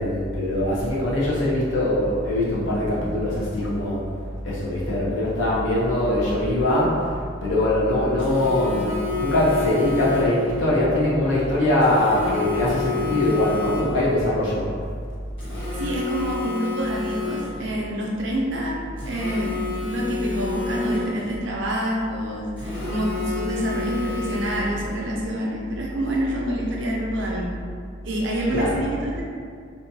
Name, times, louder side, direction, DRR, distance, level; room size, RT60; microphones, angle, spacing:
voice 1, 0.0-4.0 4.4-14.7 28.5-28.8, left 1 dB, 70° left, -6 dB, 0.7 m, -22 dB
Telephone, 8.2-10.5 11.8-14.2 15.4-17.7 19.0-21.4 22.6-24.9, left 4 dB, 25° left, 0.7 m, -30 dB
voice 2, 15.8-18.8 19.0-19.6 19.8-27.5 28.0-29.2, right 1 dB, 65° right, -3 dB, 0.5 m, -27 dB
2.7 x 2.3 x 2.6 m, 2.2 s
head